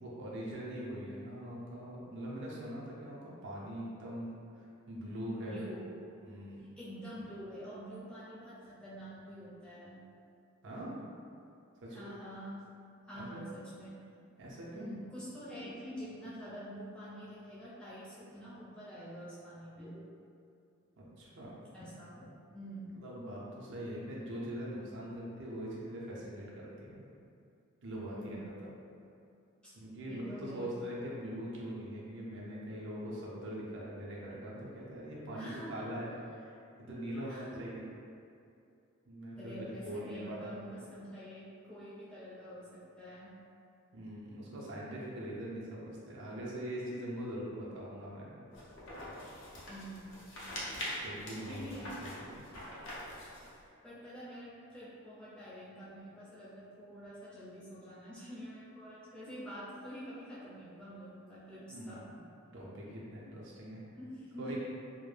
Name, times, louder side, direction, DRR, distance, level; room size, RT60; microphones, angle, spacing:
voice 1, 0.0-5.6 6.2-6.6 10.6-11.0 11.8-12.1 13.1-13.4 14.4-14.9 21.0-21.5 22.9-27.0 27.8-28.7 29.7-36.1 36.4-37.9 39.1-39.5 39.8-40.5 43.9-48.3 51.0-52.4 61.7-62.3 62.5-63.8 64.4-64.7, equal, 60° right, -5 dB, 0.5 m, -42 dB
voice 2, 5.5-6.1 6.8-10.0 11.9-12.6 13.1-14.0 14.7-20.1 21.7-23.0 28.1-28.6 29.6-29.7 30.1-30.7 35.3-35.9 37.1-37.7 39.4-43.3 49.7-50.2 51.5-52.0 53.8-62.1 64.0-64.7, equal, 5° left, -10 dB, 0.5 m, -47 dB
sound 1, 48.5-53.6, left 1 dB, 60° left, 0.5 m, -44 dB
2.2 x 2.0 x 3.2 m, 2.5 s
head